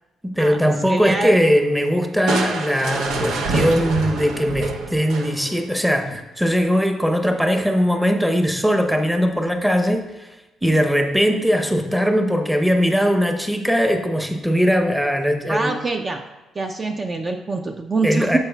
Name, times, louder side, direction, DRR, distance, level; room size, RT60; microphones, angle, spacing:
voice 1, 0.2-15.7 18.0-18.4, equal, 5° right, 5 dB, 0.7 m, -20 dB
voice 2, 0.9-1.3 15.5-16.2 16.6-18.4, right 3 dB, 30° right, 4 dB, 0.4 m, -24 dB
Crushing, 2.3-5.6, right 3 dB, 85° right, 0.7 m, -25 dB
9.5 x 7.1 x 2.3 m, 1.1 s
cardioid pair, 90°, 0 cm